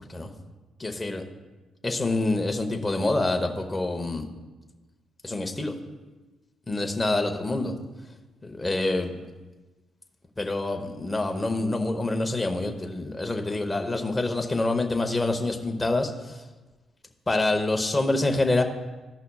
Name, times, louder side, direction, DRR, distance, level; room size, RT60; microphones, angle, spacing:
voice 1, 0.8-1.2 1.8-4.3 5.2-5.8 6.7-7.7 8.4-9.2 10.4-16.4 17.3-18.6, left 2 dB, 15° left, 5 dB, 1.0 m, -26 dB
15.5 x 5.6 x 2.3 m, 1.2 s
cardioid pair, 90°, 0 cm